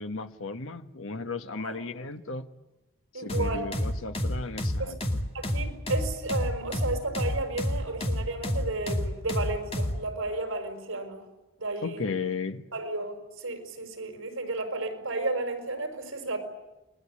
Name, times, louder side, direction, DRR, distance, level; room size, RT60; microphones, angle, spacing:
voice 1, 0.0-2.5 3.1-5.0 11.8-12.7, left 4 dB, 75° left, 9 dB, 1.4 m, -35 dB
voice 2, 3.1-3.7 4.8-4.9 5.3-11.2 11.6-12.0 12.7-16.4, right 2 dB, 80° right, 6 dB, 5.5 m, -33 dB
sound 1, 3.3-10.0, left 1 dB, 30° left, 2.5 m, -29 dB
29.5 x 21.0 x 8.5 m, 1.1 s
head